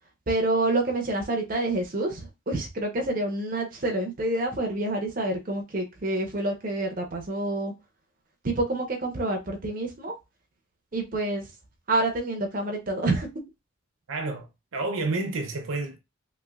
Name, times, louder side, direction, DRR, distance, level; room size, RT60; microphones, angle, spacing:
voice 1, 0.3-7.7 8.4-10.1 10.9-11.5 11.9-13.3, right 2 dB, 40° right, 0.7 m, -27 dB
voice 2, 14.1-16.0, right 3 dB, 80° right, 0.6 m, -30 dB
3.1 x 3.1 x 2.3 m
head